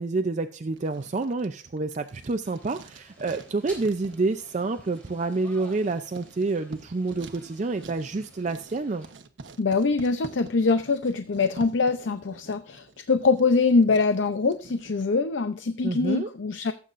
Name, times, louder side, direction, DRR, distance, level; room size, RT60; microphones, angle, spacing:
voice 1, 0.0-9.1 15.8-16.3, right 3 dB, 40° right, 8 dB, 0.5 m, -28 dB
Writing, 0.7-15.1, right 3 dB, 80° right, 1.0 m, -47 dB
sound 1, 2.4-9.1, right 1 dB, 10° left, 3.7 m, -52 dB
voice 2, 9.6-16.7, left 4 dB, 80° left, 10 dB, 0.6 m, -23 dB
17.5 x 8.4 x 2.5 m, 0.39 s
head